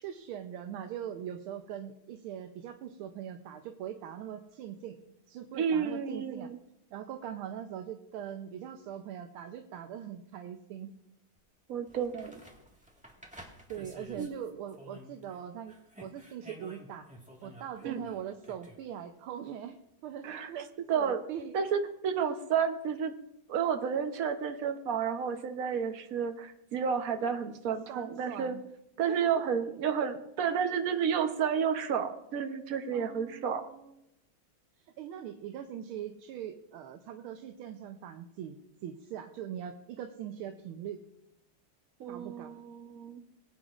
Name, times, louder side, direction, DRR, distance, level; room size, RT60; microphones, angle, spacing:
voice 1, 0.0-5.0 5.3-6.5 6.9-10.9 13.7-17.1 17.4-19.8 20.0-21.6 27.9-28.6 29.1-29.4 32.9-33.9 35.0-41.0 42.1-42.5, right 9 dB, 80° right, 6 dB, 1.5 m, -41 dB
voice 2, 5.5-6.6 11.7-12.4 14.2-14.3 17.8-18.0 20.2-20.5 20.9-21.2 21.5-23.1 23.5-28.6 29.0-33.6 42.0-43.2, right 7 dB, 60° right, 7 dB, 1.0 m, -31 dB
sound 1, 11.4-11.5 11.9-15.4 15.7-18.8 21.4-21.5, equal, 5° right, 1.2 m, -52 dB
22.0 x 8.9 x 2.4 m, 0.84 s
omnidirectional pair, 2.3 m